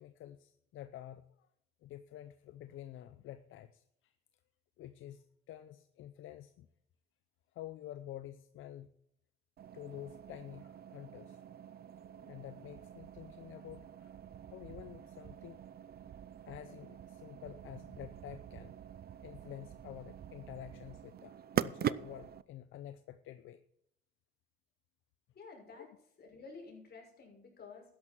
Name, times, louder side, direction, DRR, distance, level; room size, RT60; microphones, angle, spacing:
voice 1, 0.0-1.5 1.8-4.1 4.8-6.7 7.5-8.9 9.7-11.4 11.7-14.1 14.5-15.6 16.4-18.8 19.2-23.6 25.8-25.9, left 12 dB, 80° left, 12 dB, 0.7 m, -49 dB
sound 1, 9.6-22.4, right 10 dB, 50° right, 0.5 m, -43 dB
voice 2, 25.3-25.9 26.2-27.8, left 4 dB, 55° left, 0 dB, 6.0 m, -51 dB
12.5 x 10.5 x 4.5 m, 0.73 s
cardioid pair, 90°, 20 cm